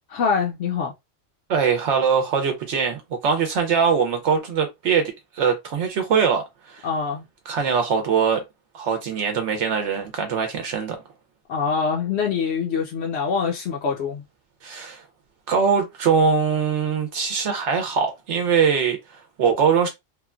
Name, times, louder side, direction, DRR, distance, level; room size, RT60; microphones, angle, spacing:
voice 1, 0.1-0.9 6.8-7.2 11.5-14.2, left 6 dB, 70° left, 0.8 m, -24 dB
voice 2, 1.5-6.9 7.5-8.4 8.7-11.0 14.6-15.0 15.5-19.9, right 6 dB, 75° right, 0.9 m, -22 dB
3.0 x 2.1 x 2.3 m
omnidirectional pair, 1.2 m